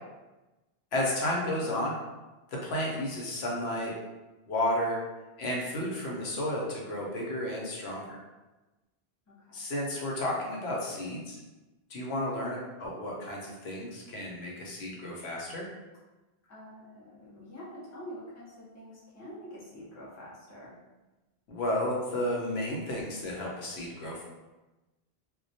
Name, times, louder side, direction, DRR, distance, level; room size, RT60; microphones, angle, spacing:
voice 1, 0.9-2.0 2.5-3.9 4.5-5.0 5.4-8.2 9.5-11.4 11.9-15.7 21.5-24.2, left 1 dB, 80° left, -3 dB, 0.9 m, -32 dB
voice 2, 14.9-15.2 16.5-20.8, equal, 20° left, -7 dB, 0.5 m, -46 dB
2.2 x 2.1 x 2.6 m, 1.1 s
omnidirectional pair, 1.1 m